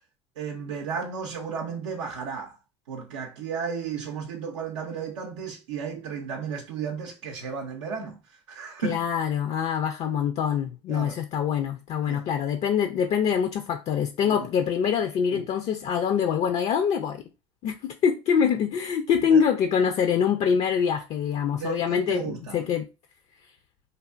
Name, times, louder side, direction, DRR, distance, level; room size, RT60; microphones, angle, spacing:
voice 1, 0.4-2.6 2.9-8.2 8.5-9.0 10.9-11.2 12.1-12.3 14.2-14.5 15.3-15.4 19.3-19.4 21.6-22.6, right 6 dB, 80° right, 0.5 m, -34 dB
voice 2, 8.8-17.2 17.6-22.9, left 7 dB, 50° left, 0.4 m, -25 dB
3.3 x 2.4 x 2.4 m
hypercardioid pair, 75°, 15 cm